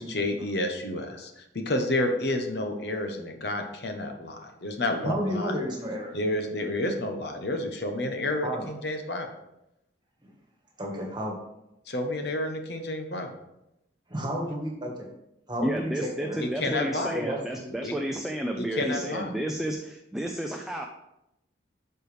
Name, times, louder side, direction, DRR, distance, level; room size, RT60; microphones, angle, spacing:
voice 1, 0.0-5.6 6.1-9.3 11.9-13.3 16.4-17.2 17.8-17.9 18.6-19.3, left 1 dB, 65° left, 4 dB, 1.0 m, -30 dB
voice 2, 5.0-6.1 8.4-8.6 10.8-11.4 14.1-15.1 15.5-16.4 17.1-17.7, equal, 25° right, 0 dB, 1.5 m, -31 dB
voice 3, 15.6-20.9, right 1 dB, ahead, 1 dB, 0.4 m, -31 dB
11.5 x 4.6 x 3.4 m, 0.87 s
head